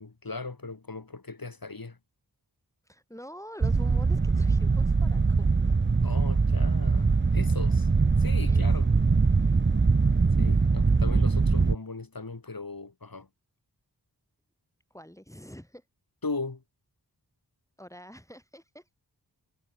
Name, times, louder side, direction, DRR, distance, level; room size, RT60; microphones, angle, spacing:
voice 1, 0.0-2.0 6.0-7.9 8.2-8.9 10.4-13.3 16.2-16.6, left 3 dB, 60° left, 4.2 m, -38 dB
voice 2, 2.9-5.7 8.5-9.0 14.9-15.8 17.8-18.9, equal, 10° left, 4.8 m, -46 dB
sound 1, 3.6-11.8, right 4 dB, 30° right, 0.7 m, -22 dB
wide cardioid pair, 55°, 39 cm